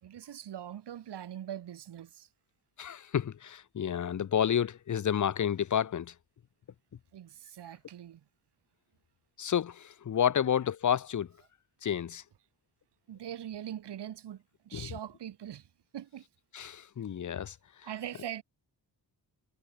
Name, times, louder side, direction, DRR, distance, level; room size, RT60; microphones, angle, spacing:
voice 1, 0.0-2.3 7.1-8.2 13.1-15.7 15.9-16.3 17.8-18.4, right 10 dB, 85° right, 1.4 m, -42 dB
voice 2, 2.8-6.1 9.4-11.3 11.8-12.2 14.7-14.9 16.5-17.6, left 9 dB, 45° left, 0.7 m, -30 dB
cardioid pair, 65°, 40 cm